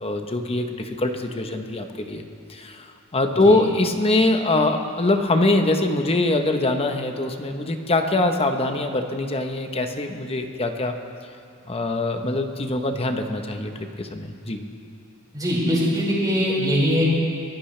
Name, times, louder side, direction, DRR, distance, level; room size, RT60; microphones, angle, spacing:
voice 1, 0.0-2.2 2.5-2.9 3.1-11.0 11.7-14.6, left 2 dB, 25° left, 5 dB, 1.0 m, -23 dB
voice 2, 15.3-17.1, equal, 20° right, -7 dB, 5.4 m, -21 dB
23.0 x 17.5 x 3.3 m, 2.4 s
head